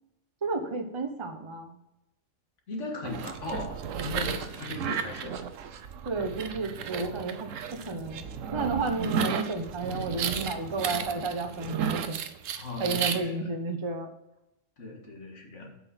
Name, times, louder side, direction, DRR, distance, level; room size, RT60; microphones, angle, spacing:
voice 1, 0.4-1.8 6.0-8.2 8.5-12.3 12.8-14.1, right 3 dB, 25° right, 5 dB, 0.8 m, -32 dB
voice 2, 2.7-5.5 12.6-13.5 14.8-15.7, left 3 dB, 65° left, 2 dB, 2.0 m, -38 dB
sound 1, 3.0-13.2, right 7 dB, 75° right, 1.1 m, -33 dB
7.7 x 5.8 x 5.7 m, 0.89 s
omnidirectional pair, 1.3 m